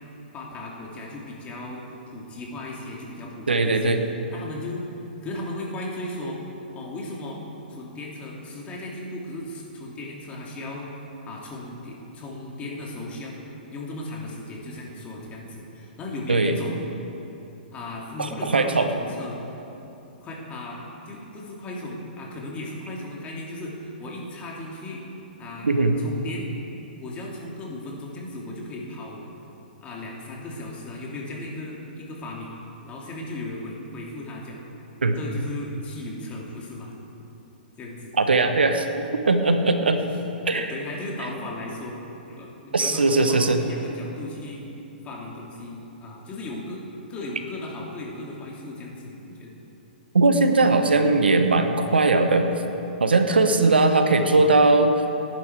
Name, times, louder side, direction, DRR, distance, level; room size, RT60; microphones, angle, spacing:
voice 1, 0.3-4.0 4.3-4.8 5.2-6.4 6.7-7.4 7.7-10.9 11.2-13.3 13.7-16.9 17.7-19.9 20.2-20.8 21.1-25.0 25.4-25.7 26.0-26.5 27.0-29.2 29.8-32.5 32.8-34.6 35.2-37.0 37.8-38.1 39.7-40.2 40.5-42.0 42.3-44.7 45.0-46.8 47.1-49.6, left 2 dB, 25° left, -2 dB, 2.7 m, -36 dB
voice 2, 3.5-4.0 16.3-16.6 18.2-18.9 25.6-26.0 35.0-35.2 38.2-38.9 39.1-40.0 40.5-40.7 42.7-43.6 50.1-52.5 53.0-54.9, right 3 dB, 85° right, 7 dB, 1.2 m, -19 dB
18.5 x 10.5 x 4.6 m, 2.9 s
hypercardioid pair, 120°, 5 cm